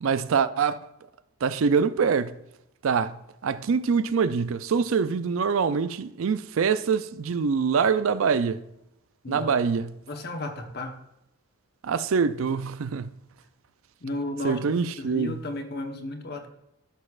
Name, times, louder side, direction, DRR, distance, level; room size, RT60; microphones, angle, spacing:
voice 1, 0.0-0.8 1.4-2.4 2.8-3.2 3.4-8.6 9.3-9.9 11.8-13.1 14.4-15.4, right 5 dB, 70° right, 0.4 m, -24 dB
voice 2, 9.2-9.7 10.1-11.0 14.0-14.6 15.0-16.5, left 2 dB, 50° left, 1.1 m, -34 dB
14.0 x 6.5 x 2.4 m
head